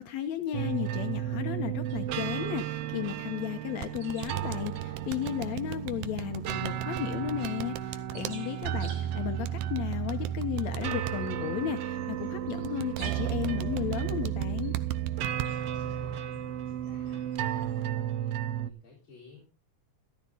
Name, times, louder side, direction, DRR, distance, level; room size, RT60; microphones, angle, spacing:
voice 1, 0.0-14.7, left 11 dB, 75° left, 8 dB, 2.1 m, -34 dB
sound 1, 0.5-18.7, right 11 dB, 70° right, 1.5 m, -33 dB
sound 2, 1.9-17.9, right 4 dB, 55° right, 3.4 m, -56 dB
sound 3, 3.8-8.3 9.4-11.1 12.6-15.5, right 13 dB, 85° right, 2.3 m, -38 dB
voice 2, 15.7-19.4, left 3 dB, 40° left, -4 dB, 4.8 m, -55 dB
14.0 x 13.0 x 3.8 m, 0.32 s
omnidirectional pair, 3.4 m